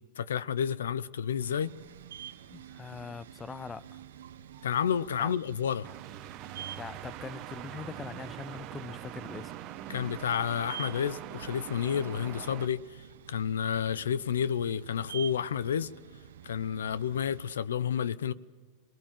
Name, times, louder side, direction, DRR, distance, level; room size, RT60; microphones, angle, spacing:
voice 1, 0.2-1.7 4.6-5.9 9.9-15.9 16.4-18.3, left 8 dB, 90° left, 0.6 m, -30 dB
sound 1, 1.4-17.5, right 9 dB, 80° right, 0.9 m, -48 dB
voice 2, 2.5-4.0 5.2-5.3 6.8-9.5, left 5 dB, 20° left, 0.5 m, -42 dB
sound 2, 5.8-12.7, right 13 dB, 45° right, 1.0 m, -43 dB
23.5 x 19.5 x 7.4 m
hypercardioid pair, 115°, 0 cm